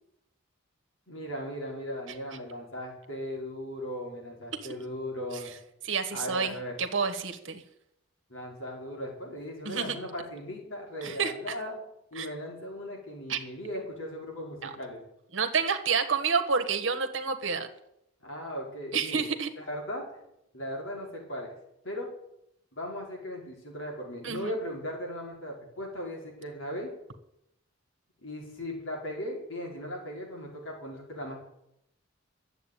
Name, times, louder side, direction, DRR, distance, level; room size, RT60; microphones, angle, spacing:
voice 1, 1.1-5.5 6.1-6.7 8.3-11.8 12.1-15.0 18.2-19.3 19.6-20.0 20.5-21.5 21.8-22.1 22.7-26.9 28.2-31.4, equal, 80° left, -1 dB, 4.8 m, -37 dB
voice 2, 5.8-7.6 9.6-10.0 11.0-11.6 12.2-12.3 13.3-13.4 14.6-14.7 15.3-17.7 18.9-19.5 24.2-24.5, right 5 dB, 70° right, 7 dB, 1.4 m, -29 dB
12.5 x 8.0 x 9.2 m, 0.81 s
head